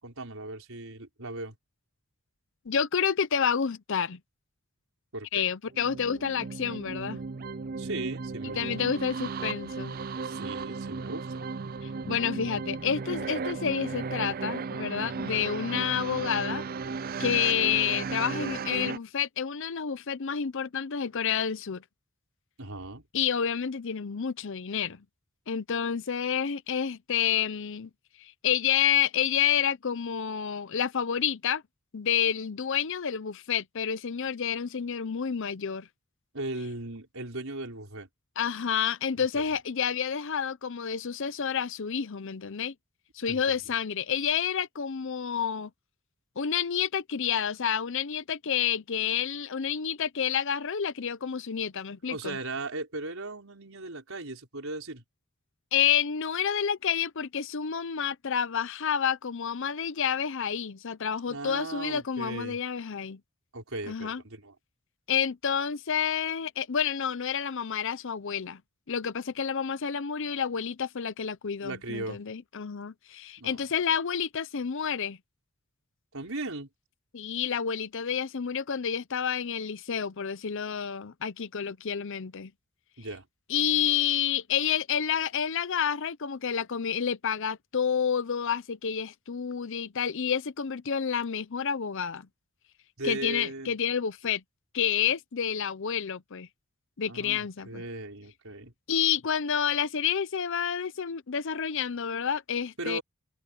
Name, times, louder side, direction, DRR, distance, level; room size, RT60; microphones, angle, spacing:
voice 1, 0.0-1.6 5.1-5.5 7.8-8.9 10.2-11.4 22.6-23.0 36.3-38.1 39.3-39.5 43.3-43.7 52.1-55.0 61.3-62.6 63.5-64.6 71.6-72.2 73.4-73.7 76.1-76.7 83.0-83.3 93.0-93.7 97.1-98.7 102.8-103.0, right 2 dB, 70° right, 5.2 m, -37 dB
voice 2, 2.7-4.2 5.3-7.2 8.6-10.0 12.1-16.6 17.2-21.8 23.1-25.0 25.5-27.9 28.2-31.6 31.9-35.9 38.4-42.7 43.2-45.7 46.4-52.4 55.7-63.2 63.9-64.2 65.1-68.6 68.9-75.2 77.1-82.5 83.5-92.3 93.0-94.4 94.7-96.5 97.0-97.8 98.9-103.0, left 8 dB, 60° left, 0.7 m, -29 dB
sound 1, 5.7-19.0, right 4 dB, 45° right, 0.5 m, -35 dB
head